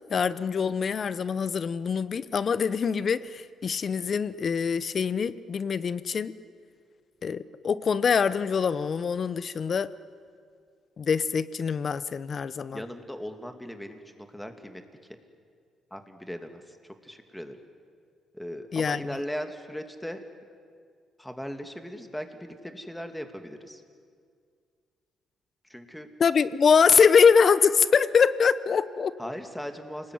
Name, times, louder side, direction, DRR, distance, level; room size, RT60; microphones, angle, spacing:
voice 1, 0.1-6.4 7.2-9.9 11.0-12.8 18.7-19.0 26.2-29.2, left 6 dB, 50° left, 16 dB, 0.9 m, -24 dB
voice 2, 12.7-14.8 15.9-17.6 18.3-20.2 21.2-23.8 25.7-26.1 29.2-30.1, equal, 5° left, 6 dB, 2.5 m, -38 dB
28.5 x 20.0 x 9.6 m, 2.1 s
cardioid pair, 90°, 0 cm